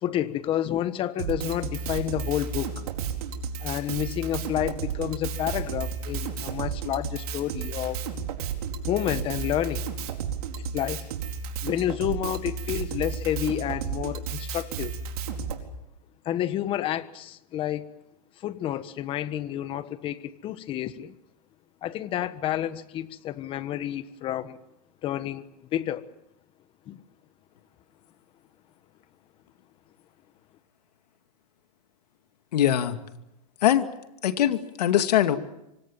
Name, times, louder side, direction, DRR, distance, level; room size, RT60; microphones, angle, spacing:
voice 1, 0.0-2.8 3.6-8.0 8.9-9.9 10.6-11.1 11.6-14.9 16.2-17.9 18.4-21.1 21.8-24.6 25.0-25.5 25.7-26.1 26.9-27.0, left 11 dB, 25° left, 1.4 m, -30 dB
Drum kit, 1.2-15.6, right 6 dB, 65° right, 4.4 m, -33 dB
voice 2, 32.5-33.0 33.6-33.9 34.2-35.4, left 11 dB, 75° left, 2.4 m, -22 dB
26.0 x 24.5 x 7.4 m
supercardioid pair, 150°, 21 cm